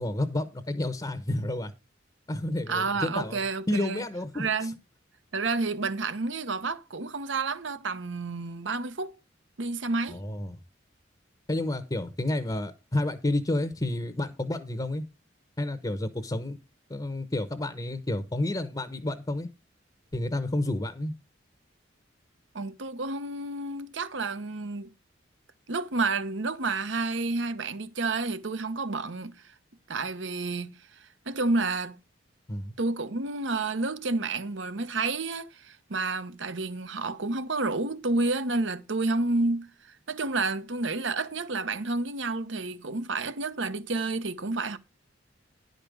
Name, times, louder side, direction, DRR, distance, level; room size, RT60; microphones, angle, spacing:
voice 1, 0.0-1.7 2.3-4.7 10.1-10.6 11.5-15.0 15.6-16.6 16.9-19.5 20.1-21.1 32.5-32.7, left 1 dB, 20° left, 0.9 m, -30 dB
voice 2, 2.7-4.1 4.3-4.8 5.3-9.1 9.6-10.2 22.5-24.9 25.7-29.4 29.9-32.0 32.8-44.8, right 3 dB, 70° right, 1.0 m, -30 dB
11.0 x 5.2 x 6.3 m
head